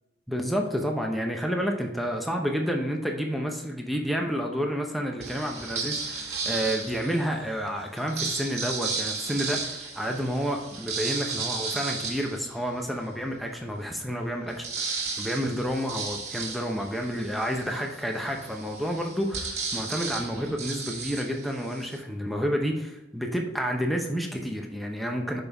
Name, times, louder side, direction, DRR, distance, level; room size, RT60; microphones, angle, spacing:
voice 1, 0.3-25.4, equal, ahead, 1 dB, 0.7 m, -30 dB
sound 1, 5.2-7.4 7.9-13.1 13.6-13.7 14.0-22.0, right 4 dB, 40° right, 1.5 m, -34 dB
6.7 x 5.2 x 3.4 m, 0.95 s
head